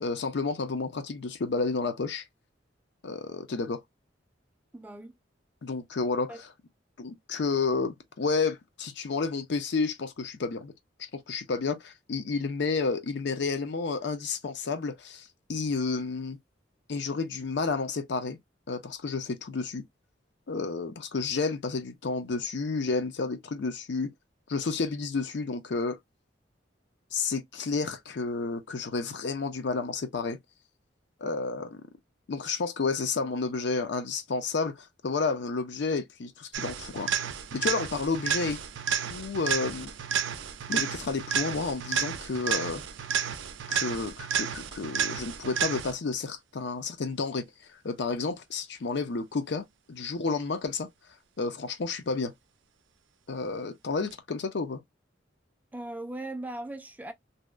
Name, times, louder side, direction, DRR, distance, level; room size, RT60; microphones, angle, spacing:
voice 1, 0.0-2.2 3.0-3.8 5.6-6.5 7.0-10.7 11.0-16.4 16.9-18.4 18.7-19.8 20.5-24.1 24.5-26.0 27.1-30.4 31.2-31.8 32.3-37.2 37.5-38.6 38.9-39.9 40.7-42.8 43.7-47.4 47.8-50.9 51.4-52.3 53.3-54.8, left 4 dB, 65° left, 0.5 m, -31 dB
voice 2, 4.7-5.1 6.3-6.4 55.7-57.1, right 1 dB, 10° right, 0.3 m, -38 dB
sound 1, 36.5-46.1 54.1-54.2, right 7 dB, 75° right, 0.4 m, -31 dB
2.7 x 2.1 x 2.3 m
head